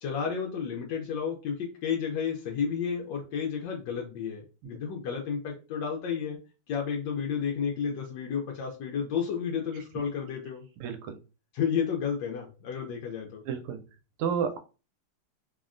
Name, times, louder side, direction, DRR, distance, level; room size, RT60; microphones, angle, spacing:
voice 1, 0.0-6.4 6.7-10.6 11.5-13.4, left 7 dB, 75° left, 0 dB, 1.1 m, -32 dB
voice 2, 10.8-11.2 13.5-13.8 14.2-14.6, right 7 dB, 85° right, 8 dB, 1.5 m, -30 dB
3.5 x 2.1 x 2.4 m, 0.32 s
omnidirectional pair, 2.4 m